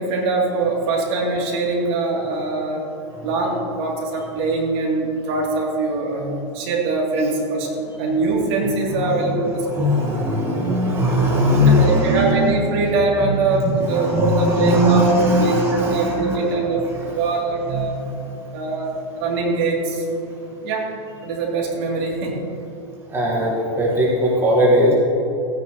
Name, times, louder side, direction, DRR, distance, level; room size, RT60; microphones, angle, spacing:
voice 1, 0.0-2.8 3.2-7.7 8.0-9.9 11.7-18.0 18.5-20.1 20.6-20.9 21.2-22.4, right 3 dB, 55° right, -2 dB, 2.9 m, -22 dB
voice 2, 8.6-12.6 13.2-16.5 16.8-17.3 17.7-18.5 20.3-20.4 23.1-24.9, equal, 15° right, -3 dB, 1.6 m, -20 dB
16.0 x 9.7 x 3.0 m, 3.0 s
supercardioid pair, 130°, 16 cm